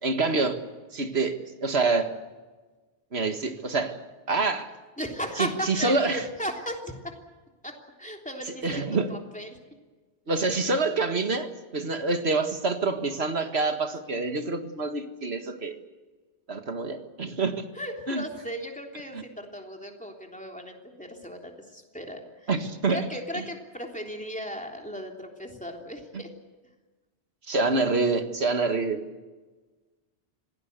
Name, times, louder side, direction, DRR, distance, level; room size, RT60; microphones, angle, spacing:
voice 1, 0.0-0.6 0.9-2.1 3.1-4.0 4.3-4.7 5.4-6.2 8.6-9.1 10.3-15.8 16.5-17.6 18.1-18.2 19.1-19.2 22.5-23.0 23.3-23.4 27.5-29.0, right 3 dB, 70° right, 7 dB, 2.1 m, -26 dB
voice 2, 5.0-7.1 7.6-7.7 8.0-9.6 17.7-22.5 22.9-26.3, equal, 5° left, 1 dB, 3.3 m, -36 dB
26.5 x 18.5 x 8.2 m, 1.3 s
omnidirectional pair, 1.1 m